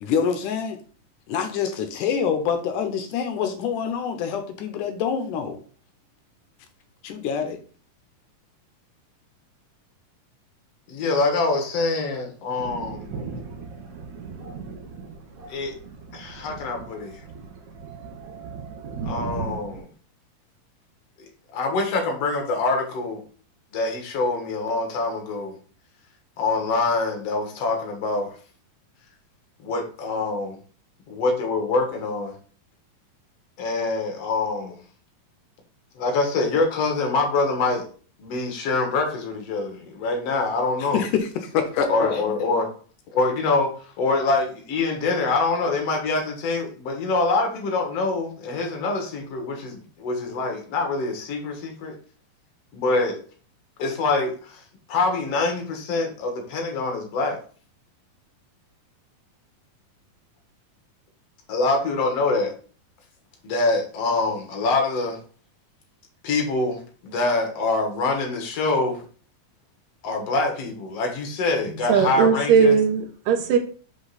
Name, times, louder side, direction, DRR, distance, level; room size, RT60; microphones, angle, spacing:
voice 1, 0.0-0.8 1.3-5.6 7.0-7.6 40.9-42.2, left 7 dB, 75° left, 2.2 m, -26 dB
voice 2, 10.9-13.2 15.5-15.7 16.1-17.2 19.0-19.9 21.5-23.2 23.7-25.5 26.4-28.4 29.6-30.6 31.1-32.3 33.6-34.8 36.0-37.9 38.2-41.0 41.9-42.7 43.1-52.0 52.7-53.2 53.8-54.6 54.9-57.4 61.5-62.5 63.4-65.2 66.2-69.0 70.0-72.8, left 3 dB, 55° left, 2.3 m, -25 dB
Thunder, 12.6-19.8, right 4 dB, 65° right, 2.3 m, -37 dB
voice 3, 71.9-73.6, right 6 dB, 80° right, 2.6 m, -18 dB
6.0 x 5.1 x 4.0 m
omnidirectional pair, 3.9 m